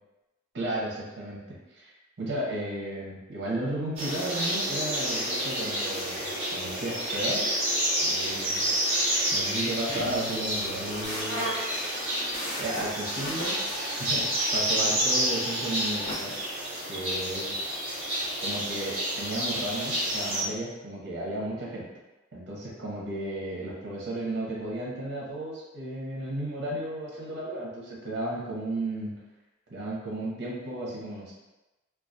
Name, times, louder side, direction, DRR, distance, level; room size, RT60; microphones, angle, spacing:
voice 1, 0.5-1.9 2.2-7.6 8.0-8.7 9.3-11.5 12.6-16.3 16.9-17.5 18.4-21.8 22.3-29.1 29.7-31.3, right 1 dB, 60° right, -4 dB, 0.6 m, -34 dB
sound 1, 4.0-20.4, equal, 35° right, 0.9 m, -29 dB
sound 2, 9.9-11.6, right 1 dB, 90° left, 1.1 m, -41 dB
sound 3, 11.0-16.2, left 1 dB, 35° left, 0.7 m, -40 dB
2.2 x 2.2 x 2.6 m, 1.0 s
head